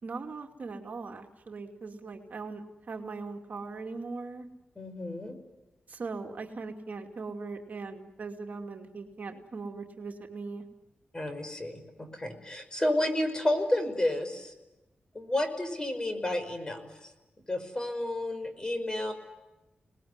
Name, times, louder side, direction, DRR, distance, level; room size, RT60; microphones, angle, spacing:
voice 1, 0.0-2.6 2.9-4.5 5.9-10.6, right 4 dB, 55° right, 3 dB, 2.6 m, -39 dB
voice 2, 4.8-5.4 11.1-14.5 15.1-16.9 17.5-19.1, left 1 dB, 25° left, 7 dB, 5.5 m, -31 dB
29.5 x 20.0 x 9.7 m, 1.0 s
wide cardioid pair, 95°, 3 cm